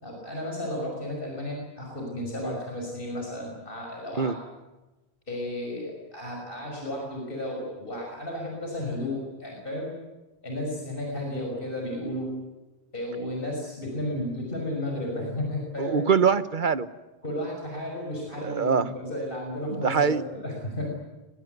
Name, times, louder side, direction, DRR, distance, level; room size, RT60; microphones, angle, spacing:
voice 1, 0.0-4.3 5.3-9.9 10.4-12.3 12.9-16.0 17.2-20.9, left 1 dB, 55° left, 0 dB, 6.0 m, -33 dB
voice 2, 15.8-16.9 18.4-18.9 19.8-20.2, right 6 dB, 50° right, 14 dB, 1.2 m, -23 dB
23.5 x 21.0 x 9.4 m, 1.1 s
omnidirectional pair, 1.1 m